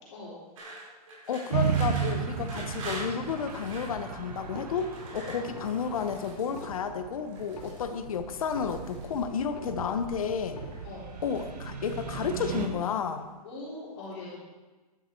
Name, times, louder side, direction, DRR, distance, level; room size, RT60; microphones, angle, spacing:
voice 1, 0.1-0.4 5.4-5.5 10.8-11.1 13.4-14.4, left 2 dB, 45° left, -7 dB, 3.7 m, -41 dB
sound 1, 0.6-4.0 4.7-6.8 7.3-7.9 8.3-9.2 10.1-10.8 11.1-11.7 12.1-12.9, right 2 dB, 55° right, 4.7 m, -44 dB
voice 2, 1.3-10.6 11.2-13.3, left 6 dB, 60° left, 8 dB, 1.1 m, -32 dB
sound 2, 1.5-12.7, right 7 dB, 90° right, 1.8 m, -35 dB
sound 3, 2.5-3.1 3.5-4.1 4.4-5.1 5.5-6.1 6.4-9.1 9.4-10.1 10.4-11.1 11.4-11.6, left 3 dB, 80° left, 3.5 m, -47 dB
11.5 x 11.5 x 4.5 m, 1.3 s
hypercardioid pair, 175°, 20 cm